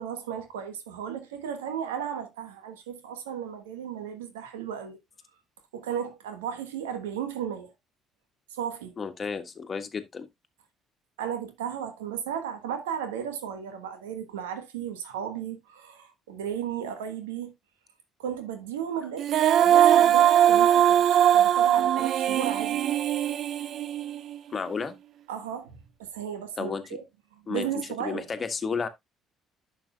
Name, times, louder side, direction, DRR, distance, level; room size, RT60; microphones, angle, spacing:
voice 1, 0.0-5.0 5.7-7.7 8.5-8.9 11.2-17.5 18.2-22.9 25.3-27.0 27.3-28.3, right 8 dB, 85° right, 1.3 m, -35 dB
voice 2, 9.0-10.3 24.5-25.0 26.6-26.8 27.5-28.9, left 5 dB, 40° left, 1.4 m, -32 dB
Female singing, 19.2-24.4, right 10 dB, 60° right, 0.4 m, -21 dB
11.0 x 6.4 x 2.3 m
hypercardioid pair, 55°, 0 cm